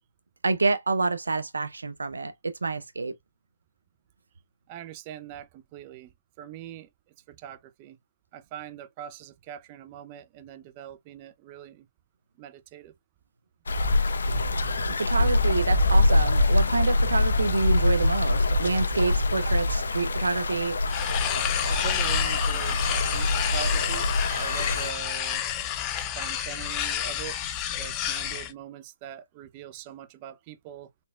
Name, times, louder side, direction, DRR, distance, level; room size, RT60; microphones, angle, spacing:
voice 1, 0.4-3.1 15.0-20.8, right 3 dB, 80° right, 0.5 m, -27 dB
voice 2, 4.7-6.9 7.3-8.0 8.3-11.9 12.4-12.9 21.6-24.1 24.4-25.4 25.9-27.4 27.7-30.9, right 10 dB, 25° right, 0.6 m, -42 dB
sound 1, 13.7-24.9, left 2 dB, 65° left, 0.8 m, -24 dB
sound 2, 20.9-28.5, left 10 dB, 20° left, 0.5 m, -30 dB
4.3 x 3.3 x 2.3 m
hypercardioid pair, 145°, 0 cm